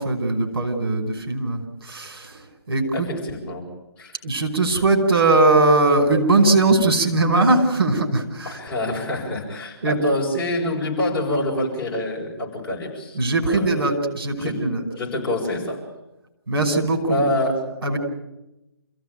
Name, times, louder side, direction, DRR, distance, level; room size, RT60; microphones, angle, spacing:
voice 1, 0.0-2.3 2.7-3.1 4.2-8.6 9.8-10.0 13.2-14.8 16.5-17.2 17.8-18.0, right 2 dB, 65° right, 4 dB, 5.6 m, -20 dB
voice 2, 2.9-3.7 4.0-4.2 8.4-13.2 13.5-13.7 14.3-14.6 15.0-15.8 17.1-17.6, left 1 dB, 10° left, -5 dB, 8.0 m, -26 dB
28.5 x 16.5 x 9.2 m, 0.95 s
figure-of-eight pair, 145°, 13 cm